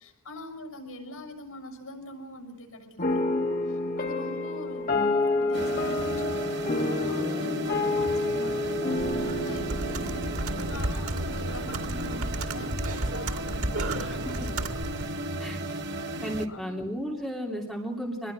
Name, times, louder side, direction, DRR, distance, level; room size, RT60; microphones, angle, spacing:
voice 1, 0.0-5.1 5.4-14.8 15.3-15.8 16.5-16.9, left 1 dB, 75° left, 4 dB, 7.0 m, -43 dB
sound 1, 3.0-11.5, left 2 dB, 40° left, 2.0 m, -29 dB
sound 2, 5.5-16.5, right 1 dB, 55° right, 1.6 m, -34 dB
Computer keyboard, 9.0-15.2, right 1 dB, 80° right, 2.4 m, -33 dB
voice 2, 14.0-14.3 15.4-15.6 16.2-18.3, equal, ahead, -2 dB, 2.8 m, -34 dB
24.5 x 21.0 x 6.1 m, 0.87 s
head